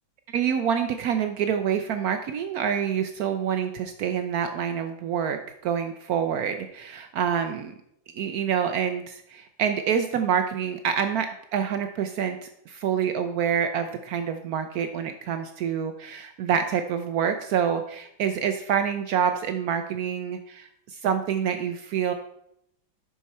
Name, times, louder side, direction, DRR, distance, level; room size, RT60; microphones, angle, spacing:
voice 1, 0.3-7.7 8.1-22.1, right 8 dB, 90° right, 7 dB, 0.8 m, -27 dB
11.0 x 4.7 x 4.2 m, 0.78 s
omnidirectional pair, 2.2 m